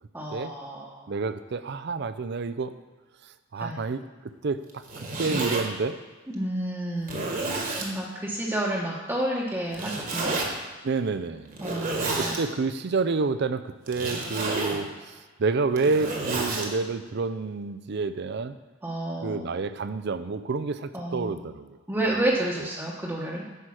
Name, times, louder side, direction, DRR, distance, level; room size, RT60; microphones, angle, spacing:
voice 1, 0.1-1.1 3.6-3.8 6.3-7.2 7.8-10.4 11.6-12.5 18.8-19.5 20.9-21.3 21.9-23.4, right 1 dB, 15° right, -5 dB, 1.0 m, -30 dB
voice 2, 1.1-2.7 3.5-4.0 4.4-4.6 5.0-6.0 10.8-11.5 12.2-15.1 15.4-18.5 19.2-21.8, right 4 dB, 60° right, 12 dB, 0.5 m, -28 dB
Zipper (clothing), 4.7-5.6 6.3-6.4 7.0-7.9 9.7-10.5 11.5-12.4 13.9-14.8 15.6-16.7, right 2 dB, 45° right, 1.5 m, -30 dB
10.0 x 4.9 x 6.3 m, 1.4 s
head